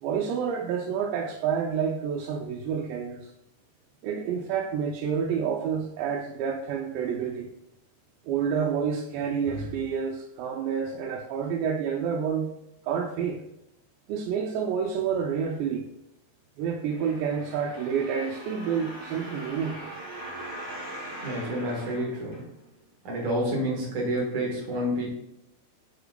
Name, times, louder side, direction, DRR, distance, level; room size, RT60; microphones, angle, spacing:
voice 1, 0.0-3.3 4.0-7.5 8.3-12.5 12.8-13.4 14.1-15.8 16.6-19.9, right 7 dB, 85° right, -1 dB, 2.9 m, -29 dB
sound 1, 16.9-22.8 23.4-23.5, right 1 dB, 35° right, 0.8 m, -40 dB
voice 2, 21.2-22.5 23.0-25.1, equal, 55° right, -3 dB, 2.8 m, -29 dB
8.8 x 3.5 x 3.8 m, 0.84 s
omnidirectional pair, 5.0 m